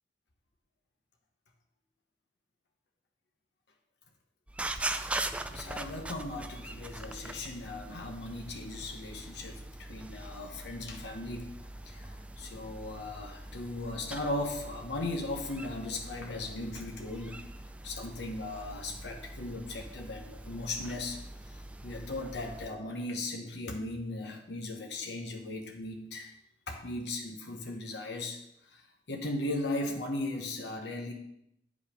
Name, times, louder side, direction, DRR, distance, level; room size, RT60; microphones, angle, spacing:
sound 1, 4.5-22.7, right 2 dB, 5° right, 0.3 m, -42 dB
voice 1, 5.5-11.5 11.9-17.4 17.8-21.2 21.8-26.3 26.7-28.4 28.7-28.8 29.1-31.1, left 2 dB, 75° left, 1 dB, 1.0 m, -37 dB
8.7 x 5.4 x 5.0 m, 0.79 s
head